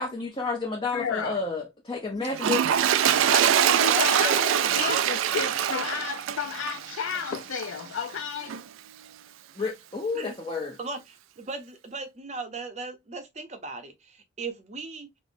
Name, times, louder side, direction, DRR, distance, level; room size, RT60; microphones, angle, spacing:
voice 1, 0.0-2.6 9.6-10.8, left 4 dB, 25° left, 0.5 m, -30 dB
voice 2, 0.9-1.4 3.3-8.6, left 7 dB, 85° left, 0.4 m, -32 dB
Toilet flush, 2.3-7.8 8.5-8.6, right 9 dB, 85° right, 0.3 m, -24 dB
voice 3, 3.9-4.4 4.8-5.1 10.1-10.4 10.8-15.1, right 3 dB, 35° right, 0.6 m, -36 dB
4.3 x 2.0 x 2.6 m
head